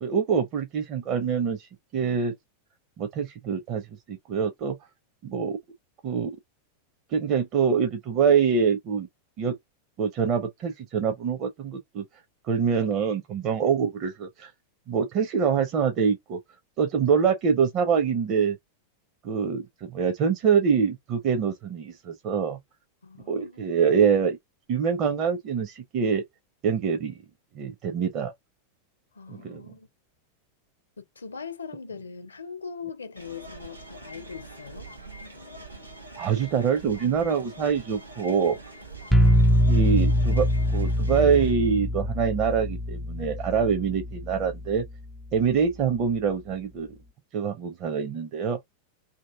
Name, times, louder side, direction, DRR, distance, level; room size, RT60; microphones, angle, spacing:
voice 1, 0.0-2.3 3.0-4.8 5.2-5.6 6.0-6.3 7.1-9.1 9.4-9.5 10.0-12.0 12.5-14.5 14.9-16.4 16.8-18.6 19.2-22.6 23.3-24.4 24.7-26.2 26.6-27.1 27.6-28.3 29.3-29.6 36.2-38.6 39.7-40.5 40.7-44.8 45.3-46.9 47.3-48.6, right 6 dB, 35° right, 0.7 m, -25 dB
voice 2, 23.0-23.7 29.1-29.9 31.0-34.9 39.1-39.4, left 5 dB, 75° left, 0.7 m, -41 dB
sound 1, 33.2-41.6, right 2 dB, 85° right, 1.1 m, -44 dB
sound 2, 39.1-44.9, equal, ahead, 0.3 m, -24 dB
2.8 x 2.7 x 3.4 m
figure-of-eight pair, 90°, 0 cm